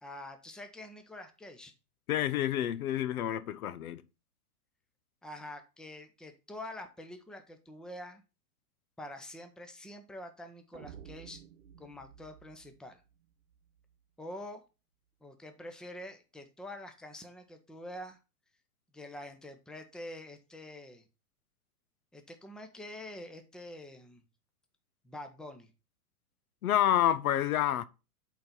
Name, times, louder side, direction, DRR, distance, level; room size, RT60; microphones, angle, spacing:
voice 1, 0.0-1.7 5.2-8.2 9.0-11.4 11.8-13.0 14.2-14.6 15.2-18.2 18.9-21.0 22.1-24.2 25.0-25.7, left 1 dB, ahead, 0.7 m, -46 dB
voice 2, 2.1-4.0 26.6-27.8, left 11 dB, 70° left, 0.7 m, -28 dB
sound 1, 10.7-13.8, right 9 dB, 70° right, 0.9 m, -52 dB
8.5 x 4.1 x 4.1 m
hypercardioid pair, 115°, 45 cm